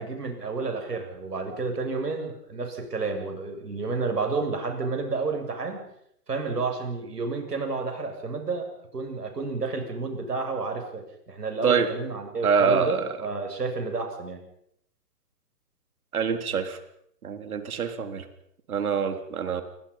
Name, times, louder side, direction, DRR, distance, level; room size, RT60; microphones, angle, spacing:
voice 1, 0.0-5.8 6.3-8.7 8.9-14.4, right 4 dB, 80° right, 4 dB, 7.6 m, -30 dB
voice 2, 12.4-13.0 16.1-16.8 17.2-18.2 18.7-19.6, right 6 dB, 65° right, 8 dB, 3.9 m, -25 dB
29.0 x 24.0 x 5.7 m, 0.72 s
figure-of-eight pair, 125°, 47 cm